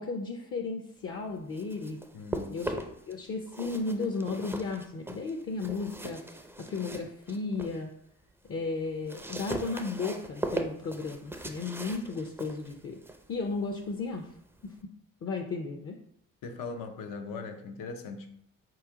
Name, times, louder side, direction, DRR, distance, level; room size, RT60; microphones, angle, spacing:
voice 1, 0.0-2.0 2.5-6.2 6.6-7.9 8.5-13.0 13.3-14.3 14.6-16.0, left 4 dB, 40° left, 3 dB, 0.6 m, -34 dB
sound 1, 1.3-3.1 3.5-7.8 8.2-14.8, right 1 dB, 5° right, 0.5 m, -39 dB
voice 2, 2.1-2.6 16.4-18.3, left 4 dB, 75° left, 5 dB, 0.7 m, -40 dB
4.3 x 3.1 x 3.5 m, 0.70 s
cardioid pair, 80°, 33 cm